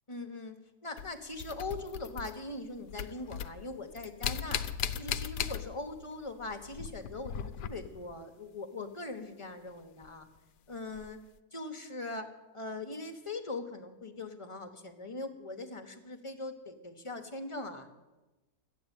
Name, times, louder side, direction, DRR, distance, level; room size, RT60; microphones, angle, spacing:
voice 1, 0.1-0.6 0.8-4.7 5.0-10.3 10.7-11.2 11.5-12.3 12.5-17.9, left 2 dB, 25° left, 6 dB, 0.8 m, -41 dB
sound 1, 1.0-2.6 2.9-6.1 6.3-8.1 10.0-10.1 10.9-11.1, left 9 dB, 75° left, 1.2 m, -38 dB
13.0 x 8.4 x 8.9 m, 1.1 s
omnidirectional pair, 1.8 m